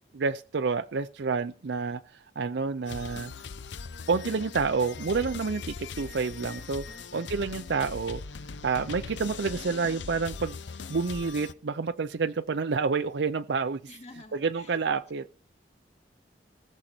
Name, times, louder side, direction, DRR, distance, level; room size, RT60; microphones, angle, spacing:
voice 1, 0.1-3.3 4.1-6.8 7.1-8.2 8.6-10.6 10.9-13.8 14.3-15.2, right 4 dB, 75° right, 0.5 m, -29 dB
sound 1, 2.8-11.5, left 5 dB, 80° left, 0.7 m, -40 dB
voice 2, 6.8-7.3 13.9-15.3, left 2 dB, 35° left, 1.9 m, -51 dB
19.0 x 6.5 x 4.4 m
head